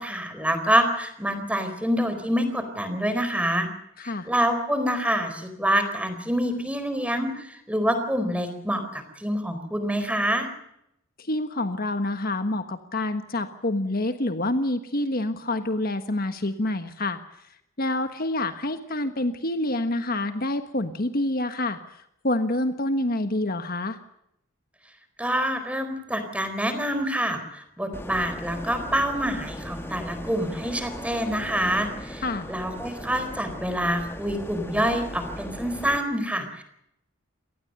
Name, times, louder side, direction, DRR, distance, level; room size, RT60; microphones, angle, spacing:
voice 1, 0.0-3.7 4.0-10.5 25.2-32.2 32.5-36.6, equal, 5° right, 8 dB, 4.3 m, -26 dB
voice 2, 4.0-4.3 11.2-17.5 17.8-24.0 32.2-32.5, left 1 dB, 45° left, 9 dB, 1.4 m, -27 dB
sound 1, 27.9-36.0, left 1 dB, 10° left, 1.6 m, -38 dB
26.0 x 19.0 x 6.7 m, 0.78 s
head